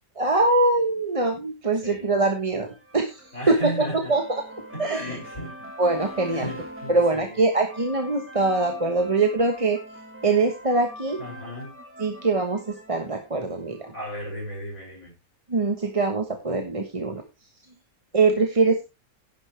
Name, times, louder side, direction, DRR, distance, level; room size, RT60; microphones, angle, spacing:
voice 1, 0.2-2.7 2.9-4.4 4.8-5.2 5.8-6.5 6.9-9.8 10.2-11.2 12.0-13.9 15.5-17.2 18.1-18.8, right 3 dB, 25° right, 1.2 m, -23 dB
sound 1, 2.4-14.2, equal, 10° right, 2.2 m, -43 dB
voice 2, 3.3-4.1 4.7-5.5 6.3-7.3 11.2-11.8 13.9-15.1, equal, 55° left, 6.7 m, -35 dB
11.0 x 10.5 x 3.3 m
omnidirectional pair, 1.5 m